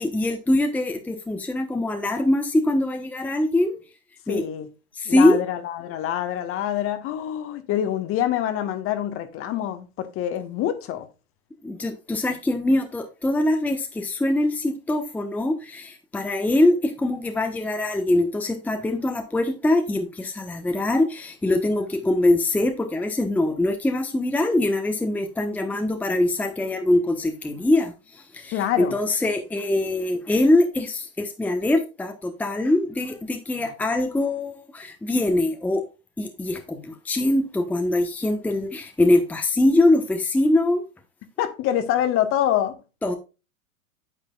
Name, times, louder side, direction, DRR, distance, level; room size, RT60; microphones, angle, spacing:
voice 1, 0.0-3.8 4.3-4.4 5.0-5.4 11.6-27.9 28.3-35.8 36.2-40.8 43.0-43.1, left 1 dB, 5° left, 1.0 m, -23 dB
voice 2, 4.3-4.7 5.0-11.1 28.5-28.9 33.6-33.7 41.4-42.7, left 11 dB, 30° left, 1.3 m, -26 dB
9.3 x 8.1 x 2.3 m
figure-of-eight pair, 105°, 43 cm